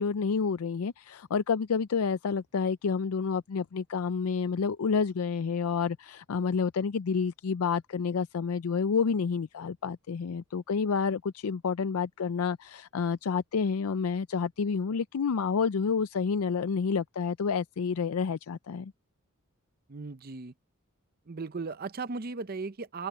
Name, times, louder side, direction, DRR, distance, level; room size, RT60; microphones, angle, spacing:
voice 1, 0.0-18.9, left 5 dB, 90° left, 0.5 m, -29 dB
voice 2, 19.9-20.5 21.3-23.1, right 4 dB, 45° right, 0.7 m, -36 dB
open air
head